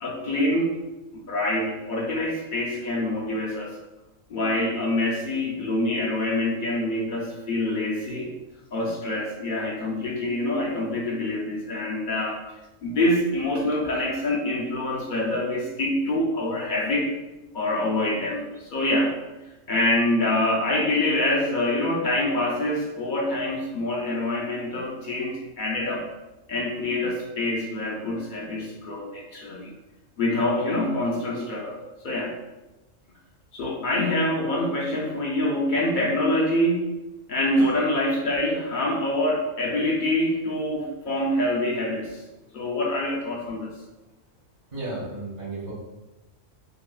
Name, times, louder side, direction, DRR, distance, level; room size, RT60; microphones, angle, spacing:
voice 1, 0.0-0.8 1.1-3.7 4.3-8.3 8.7-12.4 12.8-17.1 17.5-19.1 19.7-26.1 26.5-29.7 30.2-31.8 32.0-32.4 33.5-36.9 37.3-42.2 42.5-43.8, left 1 dB, 65° left, -2 dB, 0.5 m, -25 dB
voice 2, 44.7-45.7, right 2 dB, 75° right, -10 dB, 1.4 m, -33 dB
3.8 x 2.0 x 2.3 m, 1.1 s
omnidirectional pair, 1.3 m